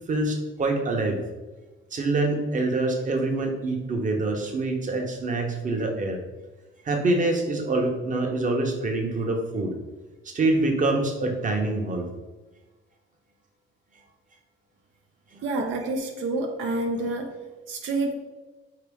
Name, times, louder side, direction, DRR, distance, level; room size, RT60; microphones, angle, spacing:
voice 1, 0.1-1.2 1.9-6.2 6.8-9.7 10.2-12.1 15.3-15.4, right 2 dB, 40° right, 2 dB, 0.8 m, -25 dB
voice 2, 15.4-17.3 17.7-18.1, right 2 dB, 85° right, 2 dB, 0.5 m, -28 dB
4.5 x 2.8 x 3.5 m, 1.2 s
cardioid pair, 90°, 20 cm